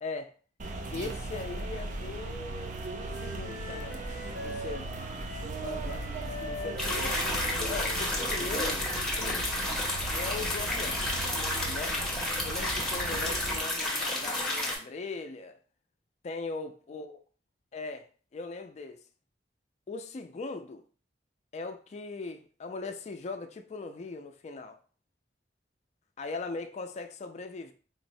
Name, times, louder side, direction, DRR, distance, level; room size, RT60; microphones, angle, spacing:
voice 1, 0.0-0.3 0.9-2.8 3.2-4.0 4.4-4.9 5.6-6.0 6.4-7.1 7.5-8.9 9.2-9.5 10.1-11.0 11.6-12.0 12.4-15.6 16.2-17.2 17.7-19.0 19.9-20.8 21.5-24.8 26.2-27.7, left 3 dB, 40° left, 0.3 m, -39 dB
sound 1, 0.6-13.6, right 2 dB, 45° right, 0.4 m, -37 dB
Wind instrument woodwind instrument, 2.0-9.7, left 1 dB, 65° right, 0.8 m, -44 dB
sound 2, 6.8-14.8, left 1 dB, 5° left, 0.6 m, -31 dB
3.7 x 2.0 x 2.6 m
head